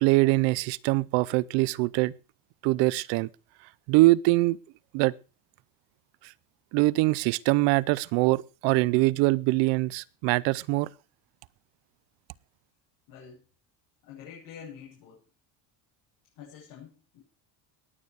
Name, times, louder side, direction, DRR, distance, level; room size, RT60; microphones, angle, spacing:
voice 1, 0.0-2.1 2.6-3.3 3.9-4.6 4.9-5.1 6.7-10.9, right 21 dB, 65° right, 0.7 m, -23 dB
voice 2, 13.1-13.4 14.0-15.2 16.4-17.2, left 7 dB, 50° left, 7.2 m, -46 dB
18.5 x 9.7 x 4.8 m
cardioid pair, 180°, 48 cm